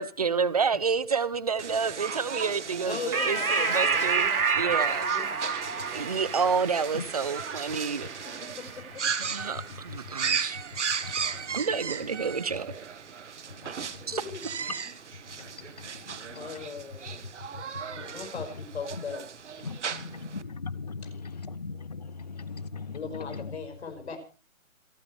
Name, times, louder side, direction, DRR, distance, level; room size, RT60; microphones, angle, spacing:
voice 1, 0.0-4.3 4.6-5.0 5.9-8.1 9.2-10.6 11.5-12.7 14.1-14.2, right 5 dB, 30° right, 0.7 m, -29 dB
sound 1, 1.6-20.4, right 6 dB, 55° right, 1.6 m, -36 dB
voice 2, 2.9-5.5 8.6-9.0 14.1-14.4 16.3-17.2 18.0-19.2 22.9-24.2, left 5 dB, 50° left, 5.4 m, -39 dB
sound 2, 3.1-10.0, right 5 dB, 85° right, 2.9 m, -29 dB
voice 3, 11.0-11.6 13.6-14.1 15.3-16.6 17.5-17.6 17.9-18.1 19.6-23.6, left 4 dB, 30° left, 0.6 m, -40 dB
27.5 x 9.3 x 3.3 m
hypercardioid pair, 165°, 41 cm